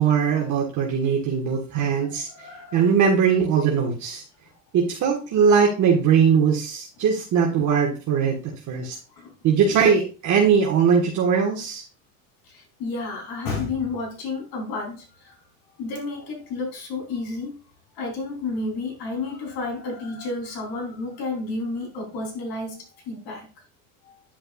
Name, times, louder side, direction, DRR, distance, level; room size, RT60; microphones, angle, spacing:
voice 1, 0.0-2.3 2.7-4.2 4.7-8.9 9.4-11.8, right 6 dB, 45° right, -1 dB, 1.7 m, -20 dB
voice 2, 1.7-2.9 7.6-7.7 8.9-9.8 12.4-15.4 15.8-17.6 17.9-23.5 24.0-24.2, left 3 dB, 60° left, 0 dB, 3.9 m, -32 dB
10.0 x 5.4 x 2.5 m, 0.34 s
supercardioid pair, 105°, 42 cm